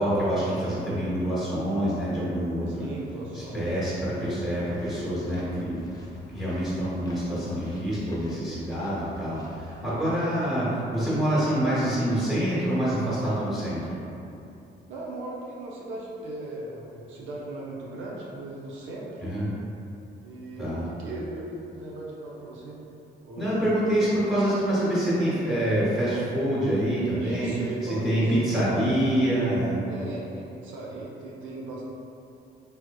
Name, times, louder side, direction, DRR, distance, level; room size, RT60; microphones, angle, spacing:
voice 1, 0.0-2.9 3.3-5.8 6.3-13.8 19.2-19.5 20.6-20.9 23.4-27.5 27.8-29.8, right 1 dB, ahead, -11 dB, 1.0 m, -26 dB
voice 2, 0.6-1.1 2.7-3.7 14.9-19.2 20.2-22.8 23.2-23.7 27.2-28.8 29.9-31.8, right 2 dB, 75° right, -4 dB, 0.6 m, -38 dB
sound 1, 3.4-9.9, left 1 dB, 20° left, 0.5 m, -46 dB
3.3 x 2.9 x 2.2 m, 2.8 s
cardioid pair, 90°, 20 cm